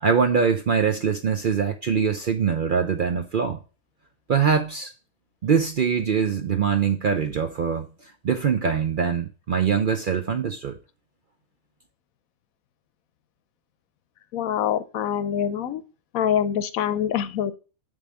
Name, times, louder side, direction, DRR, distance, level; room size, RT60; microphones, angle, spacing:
voice 1, 0.0-3.6 4.3-4.9 5.4-7.9 8.2-10.8, right 6 dB, 55° right, 0.6 m, -23 dB
voice 2, 14.3-15.8 16.1-17.5, left 9 dB, 80° left, 1.1 m, -25 dB
6.8 x 3.5 x 6.2 m
omnidirectional pair, 1.5 m